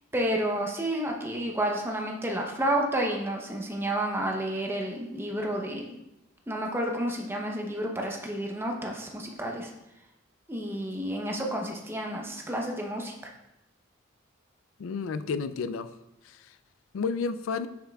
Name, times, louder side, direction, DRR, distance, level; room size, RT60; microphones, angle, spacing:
voice 1, 0.1-5.9 6.5-9.7 10.5-13.3, right 1 dB, 10° right, 0 dB, 0.7 m, -30 dB
voice 2, 14.8-15.9 16.3-16.4 16.9-17.7, left 5 dB, 85° left, 12 dB, 0.4 m, -31 dB
7.4 x 5.6 x 2.3 m, 0.90 s
head